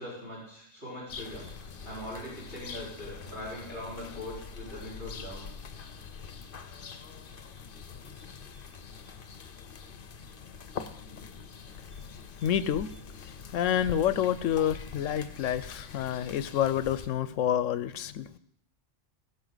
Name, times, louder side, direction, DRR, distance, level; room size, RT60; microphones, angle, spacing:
voice 1, 0.0-5.5, left 1 dB, 60° right, -9 dB, 5.1 m, -41 dB
sound 1, 1.1-17.1, left 5 dB, 50° left, 0.9 m, -44 dB
voice 2, 12.4-12.9 13.2-18.4, left 10 dB, 80° left, 15 dB, 1.0 m, -28 dB
20.5 x 6.9 x 4.0 m, 0.72 s
omnidirectional pair, 1.3 m